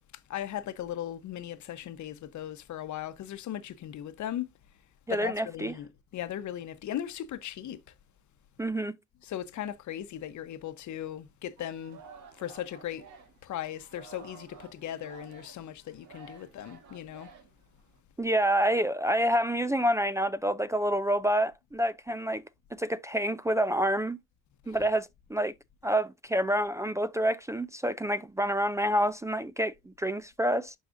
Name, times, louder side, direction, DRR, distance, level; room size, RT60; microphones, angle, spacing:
voice 1, 0.3-4.5 5.1-7.8 9.2-12.0 12.3-13.0 13.4-17.3 24.7-24.8, left 11 dB, 70° left, 1.0 m, -38 dB
voice 2, 5.1-5.7 8.6-9.0 18.2-22.4 22.7-24.2 24.7-25.5 25.8-30.7, equal, 10° right, 0.4 m, -28 dB
Singing, 11.6-18.0, right 6 dB, 80° right, 1.7 m, -52 dB
11.5 x 4.1 x 2.6 m
cardioid pair, 90°, 30 cm